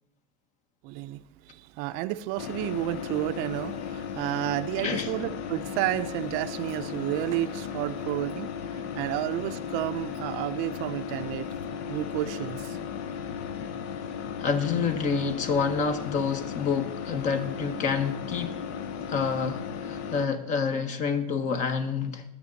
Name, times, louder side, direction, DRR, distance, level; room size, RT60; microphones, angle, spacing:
voice 1, 0.8-11.5 11.9-12.8, right 16 dB, 50° right, 0.7 m, -31 dB
sound 1, 2.4-20.3, left 7 dB, 55° left, 1.0 m, -36 dB
voice 2, 14.4-18.7 19.1-22.2, left 5 dB, 40° left, 1.5 m, -28 dB
22.0 x 7.9 x 4.1 m
supercardioid pair, 115°, 20 cm